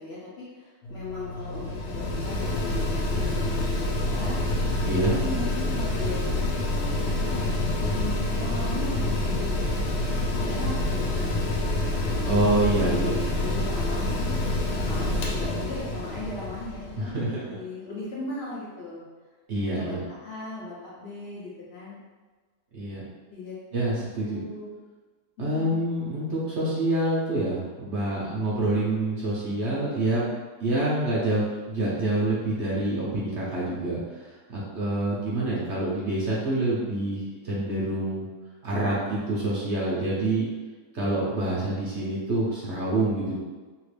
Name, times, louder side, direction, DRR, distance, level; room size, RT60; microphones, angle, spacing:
voice 1, 0.0-4.4 4.9-9.6 10.3-11.4 12.0-19.0 19.5-20.0 20.2-22.0 23.3-23.6 24.2-24.7 25.4-25.8, left 2 dB, 65° left, -7 dB, 0.6 m, -37 dB
Mechanical fan, 0.8-17.1, left 1 dB, 80° left, 1.2 m, -27 dB
voice 2, 4.8-5.1 12.2-13.1 17.0-17.6 19.5-20.0 22.7-23.0 23.7-24.4 25.4-30.3 30.6-34.0 34.5-38.2 38.6-40.5 40.9-43.4, right 1 dB, 55° right, -6 dB, 0.9 m, -26 dB
2.9 x 2.4 x 3.2 m, 1.4 s
omnidirectional pair, 1.7 m